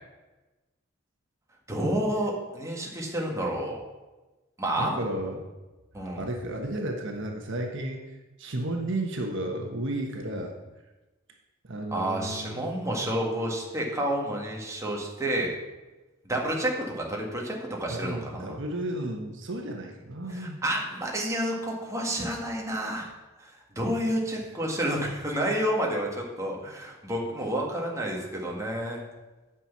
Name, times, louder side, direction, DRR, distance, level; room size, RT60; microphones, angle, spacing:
voice 1, 1.7-3.8 4.6-5.0 5.9-6.2 11.9-15.6 16.3-18.6 20.3-23.1 23.4-23.5 23.8-29.0, right 1 dB, 15° right, -2 dB, 1.9 m, -30 dB
voice 2, 4.8-5.5 6.2-8.0 8.4-10.5 11.7-13.1 17.9-20.6, right 1 dB, 65° right, 2 dB, 1.3 m, -33 dB
9.0 x 6.2 x 7.3 m, 1.1 s
head